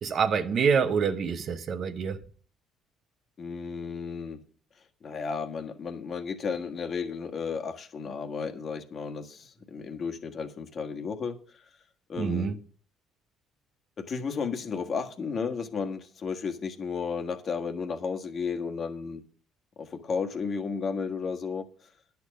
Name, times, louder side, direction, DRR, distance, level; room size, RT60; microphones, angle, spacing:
voice 1, 0.0-2.2 12.2-12.6, right 6 dB, 50° right, 0.9 m, -26 dB
voice 2, 3.4-4.4 5.0-11.4 12.1-12.5 14.0-19.2 19.8-21.7, left 5 dB, 45° left, 1.5 m, -33 dB
10.0 x 7.0 x 6.4 m
cardioid pair, 95°, 0 cm